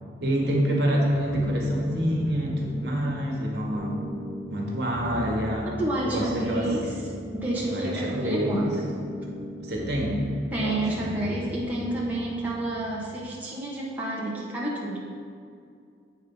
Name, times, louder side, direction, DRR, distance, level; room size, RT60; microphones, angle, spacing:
voice 1, 0.2-4.0 4.5-5.7 6.0-6.7 7.7-8.7 9.6-10.2 10.6-11.1, equal, 60° right, -2 dB, 1.6 m, -27 dB
sound 1, 1.1-13.2, left 1 dB, 75° left, 2.1 m, -38 dB
voice 2, 5.8-7.0 7.3-8.9 9.4-9.5 10.5-15.0, right 1 dB, 10° right, -6 dB, 1.2 m, -30 dB
8.2 x 5.3 x 5.5 m, 2.4 s
head